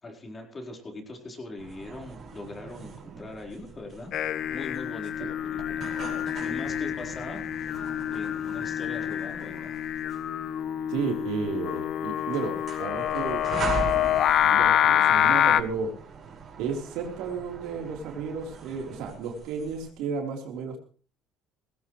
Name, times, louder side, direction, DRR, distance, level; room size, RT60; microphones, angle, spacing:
voice 1, 0.0-4.1 4.5-7.4 7.7-7.9 8.1-9.8, left 2 dB, 25° left, 2 dB, 4.3 m, -41 dB
sound 1, 1.6-19.9, right 5 dB, 45° right, 5.4 m, -41 dB
Singing, 4.1-15.6, left 11 dB, 55° left, 0.8 m, -26 dB
voice 2, 10.9-13.5 13.9-15.9 16.6-20.8, right 5 dB, 80° right, 2 dB, 3.8 m, -33 dB
18.5 x 16.5 x 3.2 m, 0.41 s
cardioid pair, 110°, 0 cm